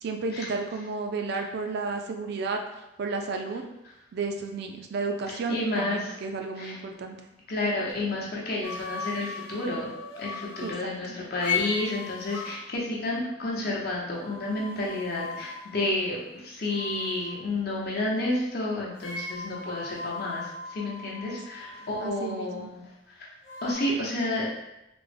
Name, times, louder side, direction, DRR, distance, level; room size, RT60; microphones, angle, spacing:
voice 1, 0.0-2.6 3.0-3.7 4.1-7.2 10.6-10.9 21.3-21.4 22.0-22.7, right 4 dB, 55° right, 4 dB, 0.4 m, -32 dB
voice 2, 5.3-6.2 6.6-6.8 7.5-9.9 10.2-23.3 23.6-24.5, left 2 dB, 55° left, -4 dB, 0.8 m, -30 dB
sound 1, 8.6-10.8 11.4-12.6 14.2-16.3 16.7-17.4 19.0-22.3 23.4-23.7, left 5 dB, 80° left, 0.8 m, -37 dB
3.4 x 2.1 x 3.3 m, 0.90 s
head